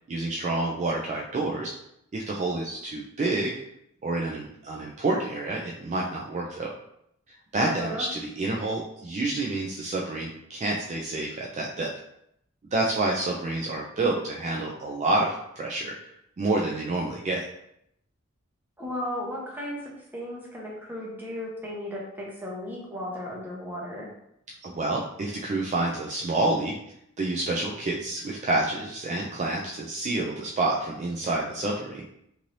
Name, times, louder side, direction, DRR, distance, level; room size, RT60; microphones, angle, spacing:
voice 1, 0.1-1.7 2.1-3.5 4.0-6.7 7.5-11.9 12.7-15.9 16.4-17.4 24.6-26.7 27.2-32.0, right 2 dB, 35° right, -1 dB, 0.3 m, -28 dB
voice 2, 7.6-8.1 18.8-24.1, left 1 dB, 10° right, -4 dB, 0.8 m, -35 dB
3.1 x 2.7 x 2.6 m, 0.75 s
head